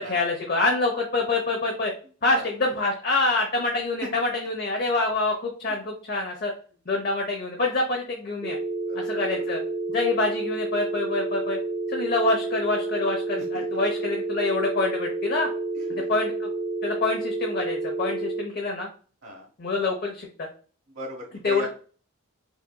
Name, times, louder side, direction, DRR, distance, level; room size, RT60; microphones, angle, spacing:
voice 1, 0.0-1.9 2.2-6.5 6.9-8.6 8.9-9.6 9.9-11.6 11.9-15.5 16.1-16.5 16.8-18.9 19.6-20.5 21.4-21.7, left 3 dB, 45° left, 1 dB, 0.6 m, -26 dB
sound 1, 8.4-18.4, right 3 dB, 20° right, 0.5 m, -30 dB
voice 2, 15.7-16.1 19.2-19.5 20.9-21.7, equal, 65° right, -2 dB, 1.0 m, -38 dB
5.7 x 2.6 x 2.2 m, 0.40 s
head